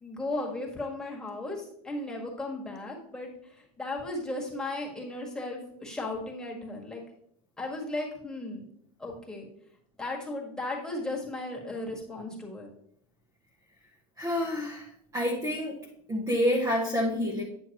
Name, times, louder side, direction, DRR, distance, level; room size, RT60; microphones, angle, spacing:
voice 1, 0.0-3.3 3.6-7.0 7.6-8.6 9.0-9.5 10.0-12.7, left 2 dB, 5° left, -3 dB, 1.6 m, -36 dB
voice 2, 14.2-15.8 16.1-17.4, left 1 dB, 15° right, -2 dB, 0.9 m, -28 dB
9.1 x 6.3 x 2.9 m, 0.69 s
supercardioid pair, 150°, 20 cm